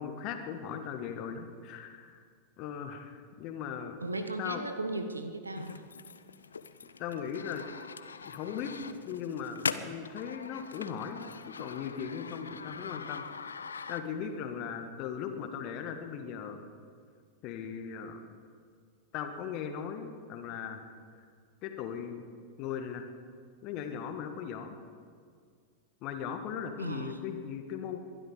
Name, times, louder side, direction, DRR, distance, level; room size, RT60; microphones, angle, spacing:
voice 1, 0.0-2.2 2.6-4.0 4.4-4.6 7.0-7.7 8.2-8.7 9.0-13.2 13.9-16.6 17.4-18.2 19.1-20.8 21.6-22.2 22.6-23.1 23.6-24.8 26.0-28.0, left 7 dB, 40° left, 6 dB, 1.6 m, -38 dB
voice 2, 4.0-5.9 26.8-27.2, right 2 dB, 80° right, 9 dB, 1.1 m, -36 dB
sound 1, 5.6-14.4, left 5 dB, 75° left, 0.6 m, -41 dB
22.5 x 12.0 x 5.1 m, 2.1 s
figure-of-eight pair, 90°, 0 cm